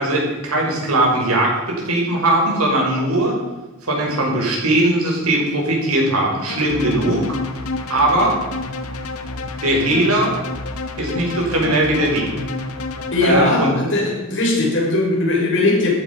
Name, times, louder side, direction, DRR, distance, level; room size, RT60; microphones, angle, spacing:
voice 1, 0.0-3.4 3.8-7.3 7.9-8.3 9.6-10.3 11.0-12.3 13.2-13.7, right 1 dB, 75° right, -1 dB, 5.6 m, -19 dB
sound 1, 6.5-13.3, left 2 dB, 75° left, 1.5 m, -29 dB
voice 2, 13.1-15.9, left 2 dB, 60° left, -2 dB, 5.7 m, -19 dB
14.0 x 11.5 x 5.5 m, 1.1 s
head